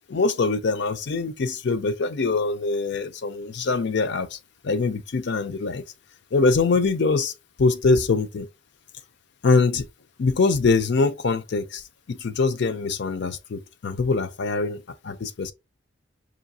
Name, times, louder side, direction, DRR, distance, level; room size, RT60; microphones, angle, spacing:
voice 1, 0.1-4.4 4.6-5.8 6.3-7.3 7.6-8.5 9.4-9.9 10.2-11.8 12.1-15.5, left 3 dB, 65° left, 0.5 m, -23 dB
4.9 x 2.7 x 2.6 m
head